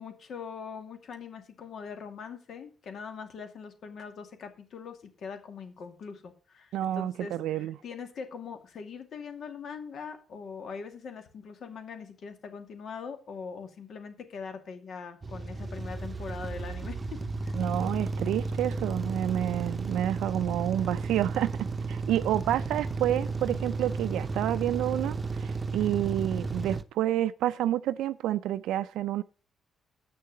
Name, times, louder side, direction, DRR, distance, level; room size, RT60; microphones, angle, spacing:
voice 1, 0.0-17.2 17.5-17.6, left 6 dB, 60° left, 2.4 m, -42 dB
voice 2, 6.7-7.8 17.5-21.5 21.9-29.2, right 12 dB, 85° right, 0.4 m, -29 dB
sound 1, 15.2-26.8, right 3 dB, 30° right, 0.8 m, -33 dB
8.4 x 6.6 x 6.9 m
cardioid pair, 90°, 0 cm